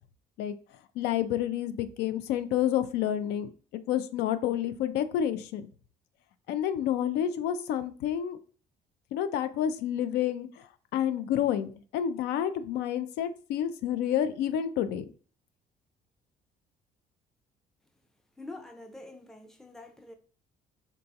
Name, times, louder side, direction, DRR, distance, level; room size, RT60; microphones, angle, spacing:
voice 1, 1.0-3.5 3.9-5.7 6.5-8.4 9.1-15.0, left 10 dB, 80° left, 0.4 m, -29 dB
voice 2, 18.4-20.1, left 2 dB, 5° left, 0.4 m, -45 dB
3.8 x 2.3 x 2.7 m
cardioid pair, 110°, 17 cm